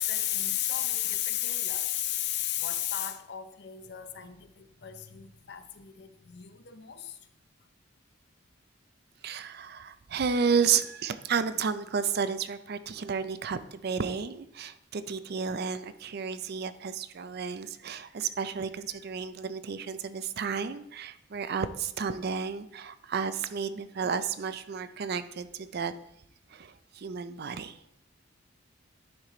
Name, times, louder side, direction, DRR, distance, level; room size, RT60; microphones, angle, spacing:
voice 1, 0.0-7.2, left 12 dB, 60° left, 0.6 m, -33 dB
voice 2, 9.2-25.9 26.5-27.8, right 6 dB, 55° right, 0.5 m, -32 dB
10.5 x 4.8 x 3.8 m
head